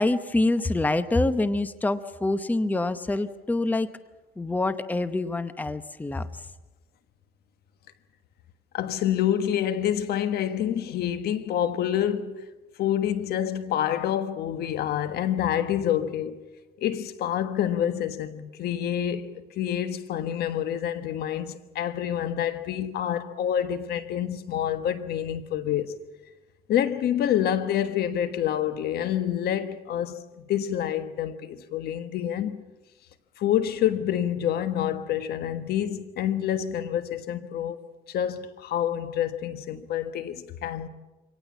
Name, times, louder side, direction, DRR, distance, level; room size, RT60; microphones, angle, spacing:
voice 1, 0.0-3.9 4.4-6.5, left 2 dB, 10° left, 0.8 m, -26 dB
voice 2, 8.7-12.5 12.8-16.4 16.8-25.9 26.7-32.6 33.4-40.9, left 10 dB, 70° left, 1.4 m, -27 dB
24.5 x 18.5 x 7.3 m
cardioid pair, 110°, 17 cm